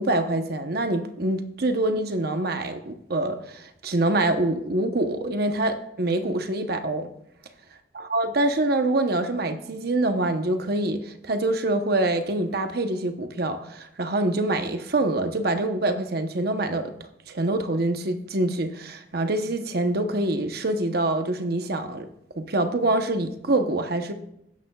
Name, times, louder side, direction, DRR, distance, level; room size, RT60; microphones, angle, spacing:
voice 1, 0.0-7.1 7.9-16.9 17.3-22.1 22.4-24.1, right 2 dB, 60° right, 0.9 m, -25 dB
15.0 x 10.5 x 2.3 m
head